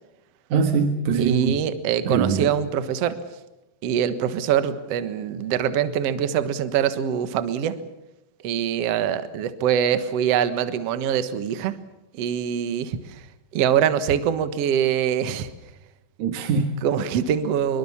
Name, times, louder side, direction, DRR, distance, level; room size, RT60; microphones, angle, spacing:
voice 1, 0.5-1.6 2.1-2.5 16.2-16.7, right 5 dB, 55° right, 6 dB, 2.5 m, -22 dB
voice 2, 1.2-3.1 3.8-7.8 8.4-11.8 12.1-13.2 13.5-15.5 16.8-17.8, right 9 dB, 80° right, 12 dB, 1.4 m, -24 dB
26.0 x 23.0 x 7.2 m, 0.95 s
omnidirectional pair, 5.1 m